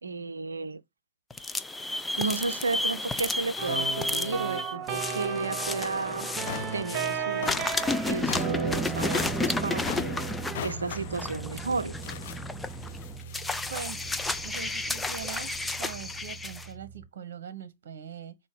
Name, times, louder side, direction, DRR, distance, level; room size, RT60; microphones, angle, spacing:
voice 1, 0.0-0.8 2.2-6.3 6.7-7.7 8.0-10.2 10.6-11.9, right 4 dB, 75° right, 0.6 m, -33 dB
sound 1, 1.3-7.2 7.4-16.7, left 2 dB, 10° left, 0.5 m, -32 dB
sound 2, 3.6-17.1, right 7 dB, 25° right, 1.7 m, -36 dB
sound 3, 5.7-5.8 6.2-15.4, left 11 dB, 50° left, 0.6 m, -42 dB
voice 2, 13.7-14.1 14.4-15.5 15.8-18.4, right 7 dB, 55° right, 1.0 m, -41 dB
7.5 x 4.1 x 5.0 m
figure-of-eight pair, 100°, 0 cm